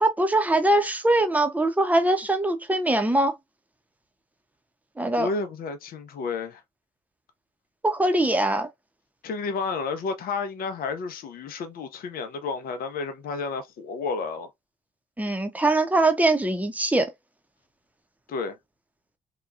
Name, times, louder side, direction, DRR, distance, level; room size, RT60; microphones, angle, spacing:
voice 1, 0.0-3.3 5.0-5.3 7.8-8.7 15.2-17.1, right 2 dB, 10° right, 0.8 m, -22 dB
voice 2, 5.2-6.6 9.2-14.5 18.3-18.6, left 4 dB, 65° left, 0.7 m, -31 dB
2.9 x 2.3 x 2.4 m
supercardioid pair, 65°, 16 cm